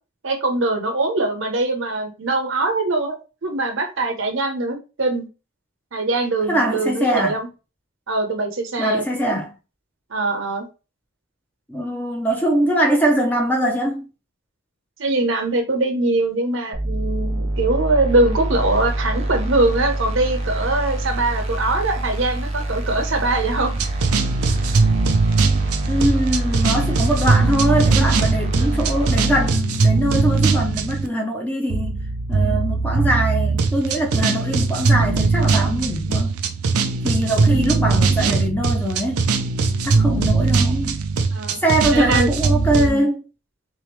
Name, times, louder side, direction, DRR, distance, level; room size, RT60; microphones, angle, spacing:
voice 1, 0.2-3.2 3.4-5.3 5.9-7.5 8.1-9.1 10.1-10.7 15.0-23.8 28.5-28.8 39.9-40.1 41.3-41.6 41.9-42.3 42.7-43.1, right 2 dB, 60° right, 0.8 m, -22 dB
voice 2, 6.5-7.4 8.8-9.5 11.7-14.1 25.9-32.0 32.3-36.3 37.0-39.2 39.8-41.0 41.6-43.2, right 1 dB, 5° left, 0.7 m, -22 dB
sound 1, 16.7-29.5, right 1 dB, 25° right, 0.7 m, -25 dB
sound 2, 23.8-31.1 31.7-42.9, right 4 dB, 80° right, 0.5 m, -20 dB
3.5 x 3.4 x 3.1 m
head